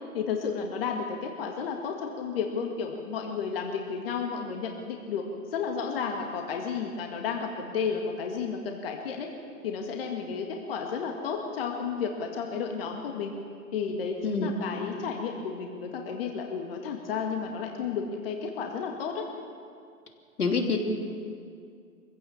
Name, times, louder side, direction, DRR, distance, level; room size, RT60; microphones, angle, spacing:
voice 1, 0.1-9.3 9.6-13.3 13.7-19.2, left 6 dB, 40° left, 2 dB, 2.0 m, -32 dB
voice 2, 20.4-20.8, left 5 dB, 75° left, 3 dB, 3.2 m, -26 dB
23.5 x 16.0 x 7.3 m, 2.3 s
hypercardioid pair, 150°, 45 cm